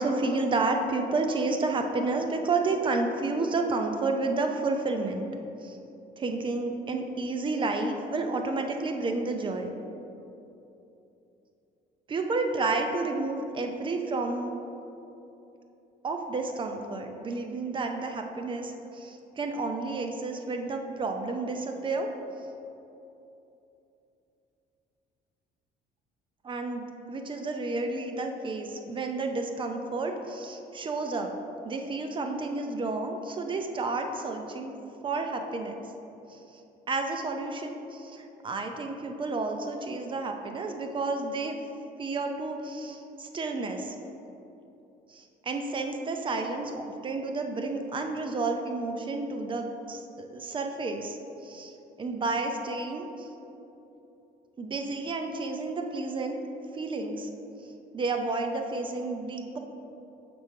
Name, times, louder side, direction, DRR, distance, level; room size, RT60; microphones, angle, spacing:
voice 1, 0.0-5.3 5.6-5.8 6.2-9.8 12.1-14.5 16.0-22.1 26.4-31.3 31.6-34.8 35.0-35.8 36.9-41.6 42.0-44.0 45.1-53.3 54.6-56.4 56.7-57.3 57.9-59.6, right 3 dB, 30° right, 4 dB, 0.6 m, -31 dB
6.0 x 3.5 x 5.5 m, 2.9 s
cardioid pair, 110°, 17 cm